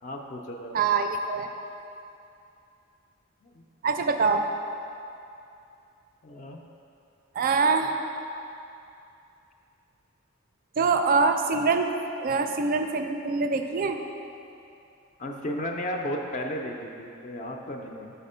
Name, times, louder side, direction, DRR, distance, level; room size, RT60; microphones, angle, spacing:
voice 1, 0.0-0.8 3.4-3.6 6.2-6.6 15.2-18.1, left 1 dB, 35° left, 2 dB, 0.4 m, -34 dB
voice 2, 0.7-1.5 3.8-4.4 7.3-7.9 10.8-11.9 12.2-14.0, right 4 dB, 45° right, 6 dB, 0.4 m, -24 dB
5.7 x 4.2 x 5.5 m, 2.7 s
head